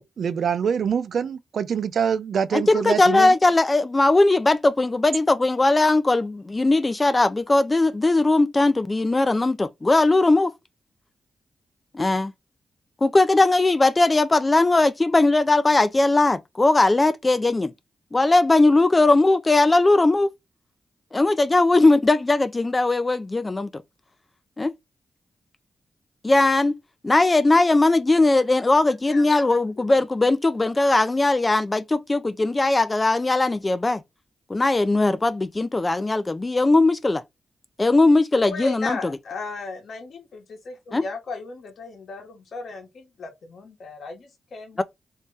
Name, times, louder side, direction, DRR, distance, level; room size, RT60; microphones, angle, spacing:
voice 1, 0.0-3.3, right 7 dB, 75° right, 0.4 m, -25 dB
voice 2, 2.5-10.5 11.9-12.3 13.0-17.7 18.1-20.3 21.1-23.7 24.6-24.7 26.2-26.8 27.0-34.0 34.5-37.2 37.8-39.0 40.9-41.0 44.8-44.9, left 2 dB, 30° left, 0.4 m, -19 dB
voice 3, 29.5-29.9 38.4-44.8, left 3 dB, 70° left, 1.1 m, -36 dB
3.0 x 2.8 x 3.3 m
cardioid pair, 70°, 0 cm